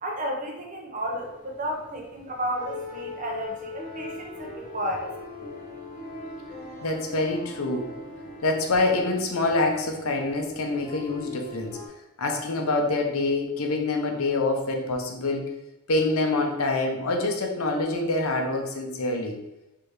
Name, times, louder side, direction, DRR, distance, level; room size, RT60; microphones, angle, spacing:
voice 1, 0.0-5.2, equal, 35° right, 1 dB, 0.8 m, -32 dB
sound 1, 1.0-11.9, left 3 dB, 35° left, 1.2 m, -41 dB
voice 2, 6.8-7.9 8.4-11.8 12.2-15.5 15.9-19.3, left 2 dB, 80° left, 3 dB, 0.8 m, -26 dB
4.8 x 3.4 x 3.1 m, 0.95 s
head